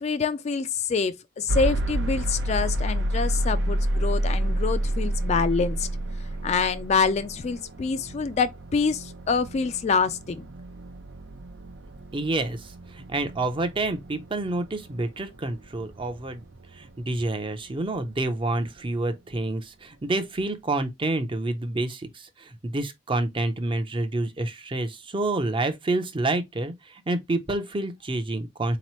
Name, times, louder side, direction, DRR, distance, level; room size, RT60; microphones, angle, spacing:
voice 1, 0.0-5.9 6.4-10.5, left 5 dB, 35° left, 0.3 m, -26 dB
sound 1, 1.5-17.4, right 1 dB, 80° right, 0.6 m, -30 dB
voice 2, 12.1-16.4 16.7-28.8, right 2 dB, 25° right, 0.6 m, -28 dB
4.0 x 2.9 x 3.0 m
head